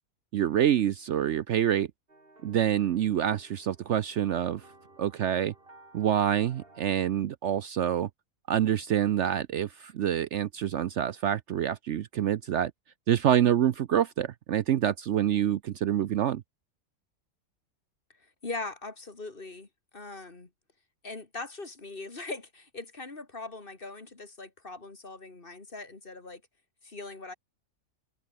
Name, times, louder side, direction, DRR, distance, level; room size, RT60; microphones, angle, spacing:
voice 1, 0.3-1.9 2.4-4.6 5.0-5.5 5.9-8.1 8.5-12.7 13.1-16.4, right 10 dB, 65° right, 0.9 m, -26 dB
sound 1, 2.1-7.1, right 2 dB, 40° right, 4.4 m, -55 dB
voice 2, 18.2-20.5 21.0-26.4 26.8-27.3, left 3 dB, 40° left, 2.5 m, -41 dB
omnidirectional pair, 1.5 m